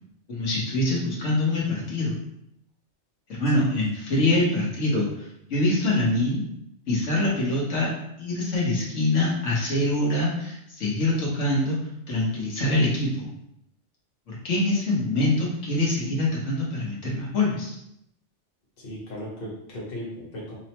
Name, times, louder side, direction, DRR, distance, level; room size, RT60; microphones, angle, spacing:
voice 1, 0.3-2.1 3.3-6.5 6.9-7.9 8.2-11.8 12.1-13.3 14.3-17.8, left 2 dB, 90° left, -5 dB, 1.4 m, -24 dB
voice 2, 18.8-20.5, equal, 50° left, -5 dB, 1.3 m, -36 dB
5.4 x 2.1 x 2.9 m, 0.78 s
omnidirectional pair, 1.2 m